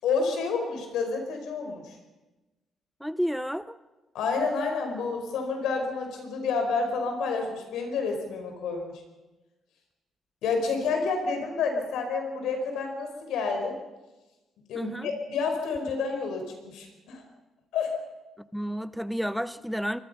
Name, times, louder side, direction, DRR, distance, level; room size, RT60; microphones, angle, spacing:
voice 1, 0.0-1.9 4.1-9.0 10.4-13.8 14.7-17.2 17.7-17.9, left 4 dB, 85° left, 4 dB, 5.1 m, -29 dB
voice 2, 3.0-3.8 14.7-15.1 18.4-20.0, equal, ahead, 14 dB, 0.7 m, -31 dB
24.5 x 20.5 x 5.7 m, 1.1 s
cardioid pair, 90°, 0 cm